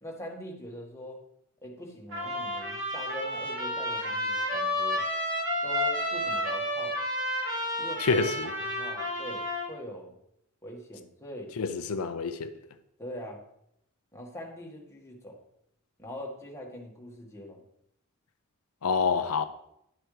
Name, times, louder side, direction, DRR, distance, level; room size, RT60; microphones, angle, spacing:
voice 1, 0.0-1.2 1.6-5.1 5.6-7.0 7.8-10.1 10.6-11.5 13.0-13.4 14.1-15.4 16.0-17.6, equal, 15° left, 1.7 m, -42 dB
Trumpet, 2.1-9.7, left 1 dB, 60° right, 3.1 m, -31 dB
voice 2, 8.0-8.5 11.6-12.5 18.8-19.4, left 5 dB, 90° left, 0.6 m, -27 dB
10.5 x 7.7 x 3.3 m
head